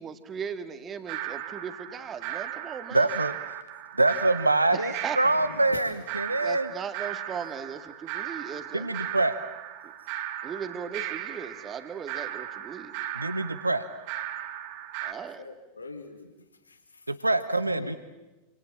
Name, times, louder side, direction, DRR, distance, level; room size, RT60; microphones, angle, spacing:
voice 1, 0.0-3.1 4.7-5.2 6.4-8.9 9.8-9.9 10.4-13.0 15.0-15.4, right 7 dB, 25° right, 9 dB, 2.1 m, -37 dB
sound 1, 1.1-15.1, right 11 dB, 45° right, 1.9 m, -37 dB
voice 2, 2.9-3.3 4.0-6.7 8.7-9.4 13.1-13.8 17.1-18.0, right 2 dB, 85° right, 14 dB, 0.9 m, -25 dB
voice 3, 5.2-5.9 15.4-17.2 17.5-18.0, left 3 dB, 80° left, 7 dB, 2.0 m, -43 dB
27.0 x 27.0 x 7.5 m, 1.1 s
figure-of-eight pair, 90°, 0 cm